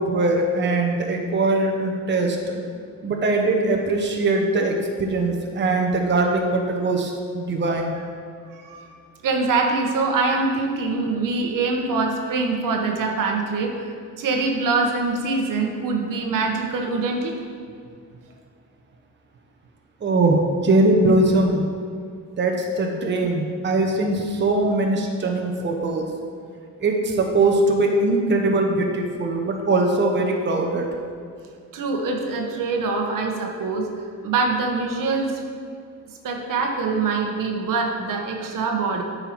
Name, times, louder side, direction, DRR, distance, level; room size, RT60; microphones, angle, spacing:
voice 1, 0.0-2.4 3.0-7.9 20.0-21.7 22.4-26.1 26.8-30.9, right 2 dB, 35° right, 1 dB, 1.0 m, -21 dB
voice 2, 8.5-8.9 9.2-17.3 31.7-33.9 34.2-35.4 36.2-39.0, right 3 dB, 70° right, 2 dB, 1.2 m, -24 dB
9.3 x 5.7 x 4.5 m, 2.2 s
cardioid pair, 105°, 33 cm